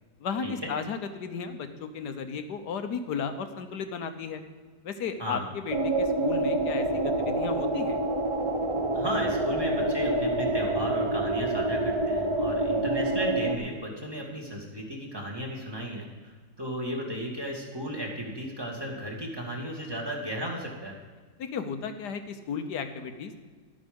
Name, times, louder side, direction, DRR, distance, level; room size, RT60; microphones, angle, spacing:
voice 1, 0.2-4.4 4.8-8.0 21.4-23.4, left 6 dB, 75° left, 8 dB, 1.5 m, -34 dB
sound 1, 5.7-13.6, right 2 dB, 35° right, 0.5 m, -27 dB
voice 2, 8.9-20.9, equal, 15° right, -1 dB, 2.1 m, -35 dB
12.5 x 9.2 x 5.2 m, 1.5 s
omnidirectional pair, 1.8 m